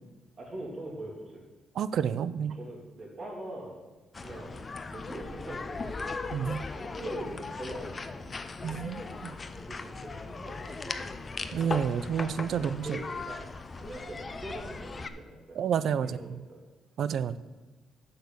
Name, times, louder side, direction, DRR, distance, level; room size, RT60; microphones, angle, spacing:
voice 1, 0.4-1.4 2.5-3.8 4.2-4.6 4.9-6.1 6.8-8.4 9.6-11.1 12.5-15.6 16.0-16.6, right 1 dB, 45° right, -1 dB, 2.9 m, -43 dB
voice 2, 1.7-2.5 6.3-6.6 8.6-9.3 11.5-13.0 15.5-16.5 17.0-17.4, right 8 dB, 65° right, 16 dB, 0.5 m, -30 dB
sound 1, 4.1-15.1, left 3 dB, 30° left, 0.7 m, -38 dB
7.9 x 6.6 x 7.0 m, 1.2 s
cardioid pair, 90°, 0 cm